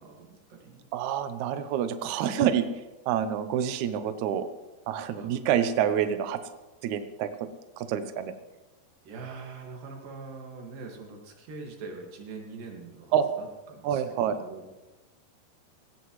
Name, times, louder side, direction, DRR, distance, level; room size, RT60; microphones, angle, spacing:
voice 1, 0.0-0.9 5.1-5.3 9.0-14.8, right 4 dB, 65° right, 1 dB, 3.6 m, -43 dB
voice 2, 0.9-2.7 3.1-4.5 4.9-6.4 6.8-7.5 7.8-8.4 13.1-13.2 13.8-14.4, right 9 dB, 85° right, 10 dB, 1.6 m, -27 dB
17.5 x 17.5 x 3.2 m, 1.1 s
omnidirectional pair, 4.5 m